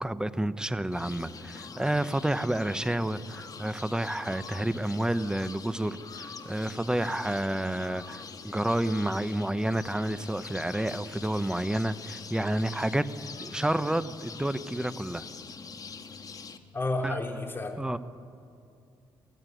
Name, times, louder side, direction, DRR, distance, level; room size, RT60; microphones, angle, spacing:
voice 1, 0.0-13.1 13.4-15.2 17.0-17.1 17.8-18.0, right 1 dB, 10° right, 14 dB, 1.0 m, -30 dB
sound 1, 0.9-16.6, left 5 dB, 45° left, 1.5 m, -44 dB
voice 2, 16.7-18.0, left 2 dB, 25° left, 3 dB, 3.1 m, -31 dB
25.0 x 15.0 x 9.3 m, 2.5 s
cardioid pair, 80°, 9 cm